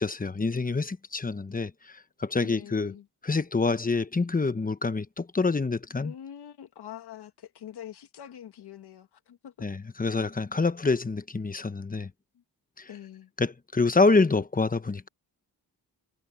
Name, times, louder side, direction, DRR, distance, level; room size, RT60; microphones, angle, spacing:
voice 1, 0.0-2.9 3.2-6.1 9.6-12.1 12.8-12.9 13.4-15.1, left 3 dB, 20° left, 1.0 m, -26 dB
voice 2, 2.4-3.1 6.0-9.7 12.3-12.4 12.9-13.3, left 10 dB, 90° left, 1.8 m, -44 dB
cardioid pair, 85°, 39 cm